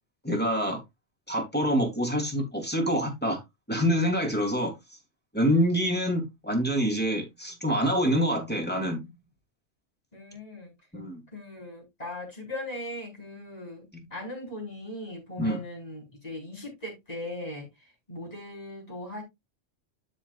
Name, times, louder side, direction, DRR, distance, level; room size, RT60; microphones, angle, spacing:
voice 1, 0.2-0.8 1.3-3.4 3.7-4.7 5.3-9.0 10.9-11.2 15.4-15.6, equal, 10° left, 2.8 m, -26 dB
voice 2, 10.1-10.7 11.3-19.2, left 1 dB, 30° left, 4.6 m, -39 dB
12.5 x 5.4 x 2.4 m
omnidirectional pair, 1.2 m